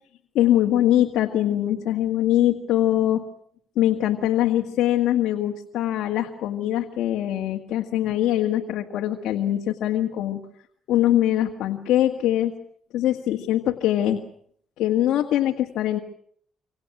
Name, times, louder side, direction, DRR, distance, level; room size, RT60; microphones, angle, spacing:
voice 1, 0.4-3.2 3.8-10.4 10.9-12.5 12.9-14.2 14.8-16.0, left 12 dB, 85° left, 2 dB, 1.7 m, -22 dB
27.0 x 25.5 x 6.0 m, 0.63 s
cardioid pair, 90°, 0 cm